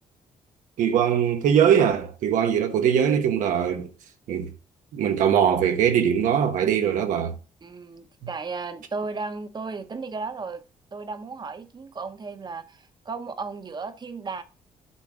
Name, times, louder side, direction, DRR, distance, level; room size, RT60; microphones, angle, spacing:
voice 1, 0.8-3.9 4.3-4.5 4.9-7.3, right 8 dB, 85° right, 1.1 m, -21 dB
voice 2, 7.6-10.6 10.9-14.4, right 4 dB, 35° right, 1.0 m, -35 dB
8.5 x 3.7 x 6.1 m
cardioid pair, 90°, 13 cm